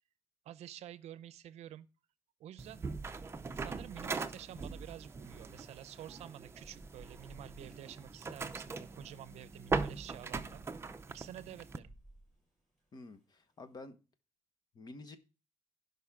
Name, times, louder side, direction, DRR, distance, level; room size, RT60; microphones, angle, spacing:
voice 1, 0.4-1.9 2.4-2.9 3.5-10.6 11.1-11.9, right 11 dB, 75° right, 0.6 m, -49 dB
sound 1, 2.6-11.8, right 4 dB, 25° right, 0.7 m, -41 dB
Thunder / Rain, 6.3-13.5, right 1 dB, ahead, 7.0 m, -60 dB
voice 2, 12.9-14.0 14.7-15.2, left 2 dB, 35° left, 1.2 m, -49 dB
16.5 x 5.4 x 3.7 m
cardioid pair, 130°, 11 cm